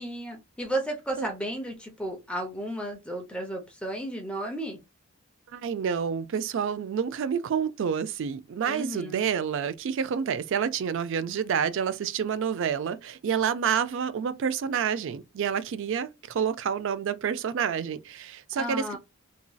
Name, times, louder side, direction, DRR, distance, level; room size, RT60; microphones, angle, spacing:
voice 1, 0.0-4.8 8.7-9.3 18.6-19.0, right 1 dB, 5° left, 0.5 m, -33 dB
voice 2, 5.5-19.0, right 7 dB, 60° right, 0.3 m, -28 dB
2.9 x 2.6 x 2.2 m
head